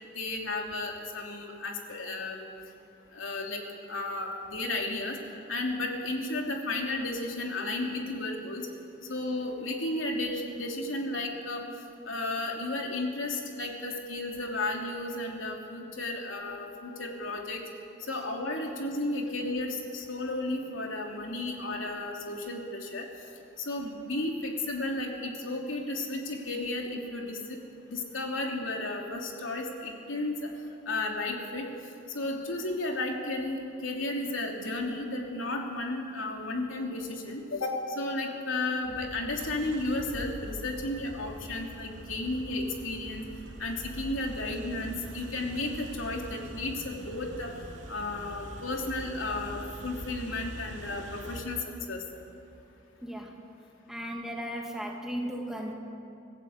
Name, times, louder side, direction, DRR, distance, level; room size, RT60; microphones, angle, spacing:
voice 1, 0.1-2.4 3.1-3.6 3.9-5.2 5.5-8.7 9.1-11.6 12.1-17.6 18.1-23.0 23.6-27.6 27.9-30.5 30.9-31.7 32.1-43.2 43.6-47.5 47.9-51.6 51.9-52.0, left 2 dB, 80° left, 1 dB, 3.0 m, -33 dB
sound 1, 38.8-51.4, right 1 dB, 75° right, 2.4 m, -44 dB
voice 2, 53.0-53.3 53.9-55.7, equal, 5° right, -1 dB, 2.3 m, -36 dB
25.5 x 15.5 x 8.1 m, 2.6 s
head